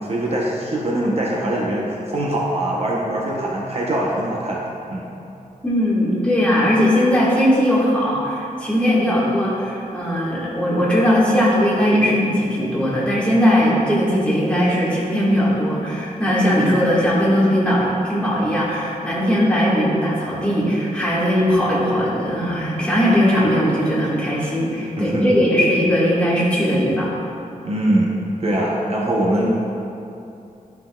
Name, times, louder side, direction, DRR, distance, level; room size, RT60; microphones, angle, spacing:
voice 1, 0.0-5.1 25.0-25.4 27.6-29.5, right 1 dB, 50° right, -3 dB, 0.8 m, -22 dB
voice 2, 5.6-27.1, equal, 10° left, -8 dB, 1.6 m, -19 dB
11.0 x 5.7 x 2.3 m, 2.7 s
wide cardioid pair, 170°, 14 cm